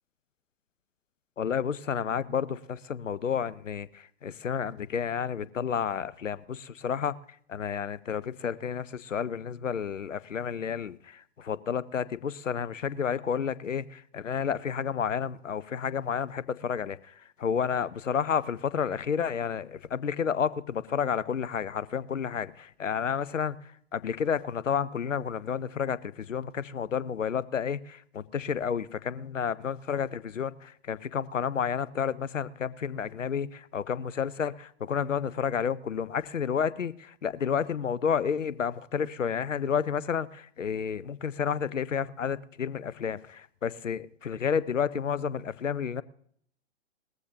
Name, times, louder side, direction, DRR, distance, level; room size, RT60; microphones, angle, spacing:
voice 1, 1.4-7.2 7.5-46.0, left 7 dB, 75° left, 0.8 m, -31 dB
20.0 x 14.5 x 2.9 m
figure-of-eight pair, 110°, 38 cm